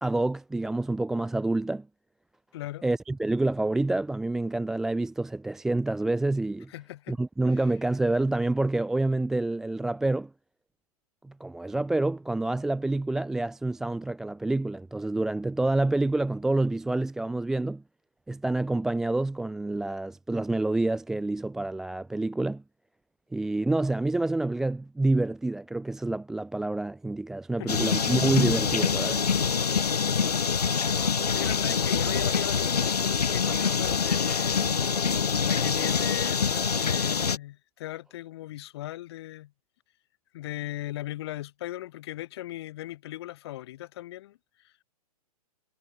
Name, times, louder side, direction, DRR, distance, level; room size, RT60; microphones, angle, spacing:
voice 1, 0.0-1.9 2.8-6.7 7.1-10.3 11.2-17.8 18.3-22.6 23.3-29.3, right 2 dB, ahead, 0.4 m, -27 dB
voice 2, 2.5-2.9 6.7-7.2 7.5-7.6 27.6-27.9 31.3-34.6 35.4-39.5 40.3-44.4 44.6-44.8, left 15 dB, 40° left, 6.2 m, -38 dB
sound 1, 27.7-37.4, left 6 dB, 80° left, 0.4 m, -25 dB
figure-of-eight pair, 115°, 20 cm